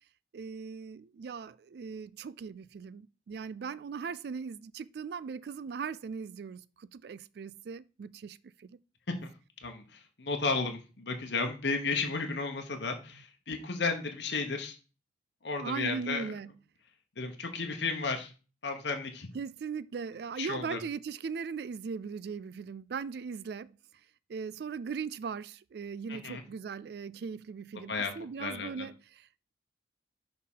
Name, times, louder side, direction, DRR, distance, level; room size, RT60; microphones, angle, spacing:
voice 1, 0.3-8.8 15.6-16.6 19.3-23.7 24.3-29.5, right 5 dB, 60° right, 0.3 m, -39 dB
voice 2, 9.6-14.8 15.4-16.3 17.2-18.3 18.6-19.3 20.4-20.8 26.1-26.4 27.9-28.1 28.4-28.9, left 4 dB, 70° left, 1.0 m, -33 dB
6.4 x 3.6 x 5.5 m
head